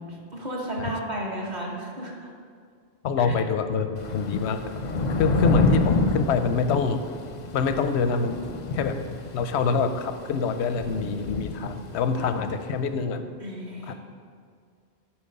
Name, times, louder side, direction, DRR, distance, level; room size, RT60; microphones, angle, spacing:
voice 1, 0.1-2.3 3.2-3.3 13.4-13.9, right 1 dB, 45° right, -2 dB, 1.5 m, -33 dB
voice 2, 3.0-4.6 5.1-7.0 7.5-8.4 8.7-9.0 9.3-13.3 13.9-14.0, left 5 dB, 90° left, 9 dB, 0.9 m, -25 dB
Thunder / Rain, 4.0-12.3, left 2 dB, 50° left, 0.6 m, -28 dB
10.5 x 4.6 x 5.3 m, 2.1 s
omnidirectional pair, 1.1 m